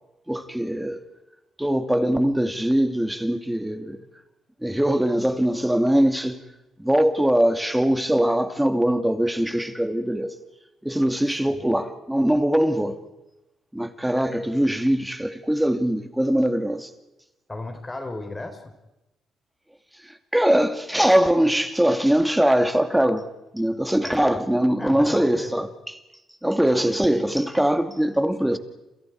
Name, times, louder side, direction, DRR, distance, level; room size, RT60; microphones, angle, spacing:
voice 1, 0.3-1.0 1.6-4.0 4.6-6.4 6.8-10.3 10.8-13.0 13.7-16.9 20.3-23.3 23.5-25.7 26.4-28.6, right 1 dB, 5° right, 2.4 m, -22 dB
voice 2, 11.3-11.6 17.5-18.6 24.0-24.2 24.8-25.5, left 2 dB, 20° left, 4.3 m, -35 dB
29.0 x 28.0 x 4.8 m
cardioid pair, 90°, 0 cm